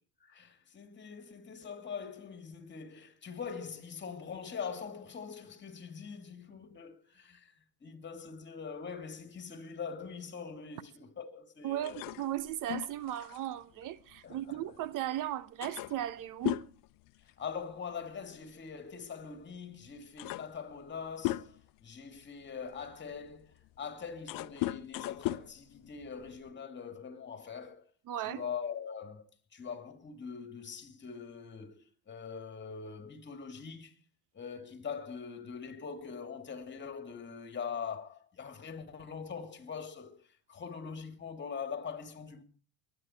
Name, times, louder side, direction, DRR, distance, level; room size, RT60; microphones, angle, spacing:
voice 1, 0.2-12.1 14.2-14.8 17.2-27.9 28.2-29.2 29.5-34.0 34.3-42.4, left 6 dB, 30° left, 3.0 m, -43 dB
voice 2, 11.6-16.6 28.1-28.4, right 12 dB, 55° right, 1.0 m, -36 dB
sound 1, 11.8-14.9 15.2-15.3 15.6-17.8 18.1-18.3 19.3-19.4 19.9-21.8 22.4-26.5, left 17 dB, 60° left, 0.9 m, -38 dB
23.0 x 10.0 x 4.6 m
supercardioid pair, 100°, 39 cm